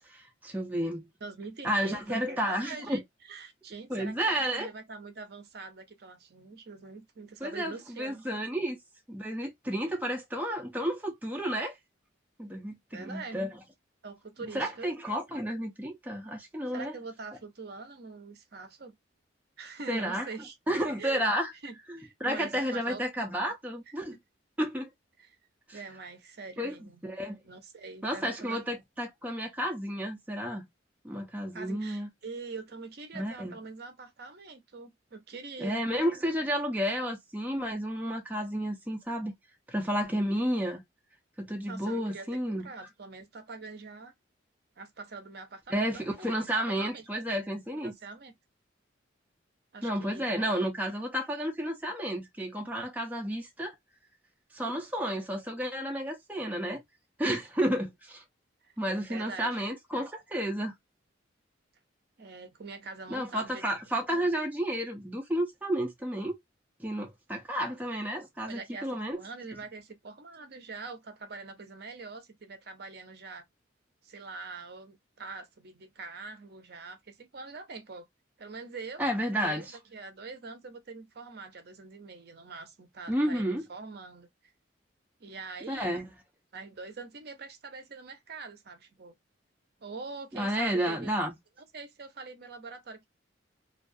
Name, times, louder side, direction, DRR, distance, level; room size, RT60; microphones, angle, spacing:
voice 1, 0.1-1.1 1.6-3.0 3.9-4.7 7.4-8.8 9.1-11.8 12.4-13.5 14.5-16.9 19.9-20.3 20.7-21.5 21.9-24.2 24.6-24.9 25.7-25.8 26.6-26.8 27.0-27.4 28.0-30.7 31.0-32.1 33.1-33.6 35.6-39.3 39.7-40.8 41.4-42.7 45.7-47.9 49.8-53.7 54.5-56.8 57.2-58.2 58.8-60.7 63.1-66.3 66.8-69.2 79.0-79.8 83.1-83.6 85.7-86.1 90.3-91.3, equal, 10° right, 0.5 m, -31 dB
voice 2, 1.2-8.2 12.9-13.5 14.0-14.9 16.7-18.9 19.6-20.6 21.0-21.2 21.6-23.0 25.2-25.4 25.7-27.0 27.4-28.6 31.5-35.8 41.7-42.3 42.6-44.1 44.8-46.3 46.5-47.4 47.7-48.3 49.7-50.6 58.6-58.7 59.1-59.6 62.2-63.6 68.5-73.4 74.0-78.1 78.4-79.0 79.4-84.3 85.2-86.0 86.5-89.2 89.8-91.1 91.6-93.1, right 4 dB, 55° right, 0.6 m, -44 dB
2.3 x 2.3 x 2.5 m
head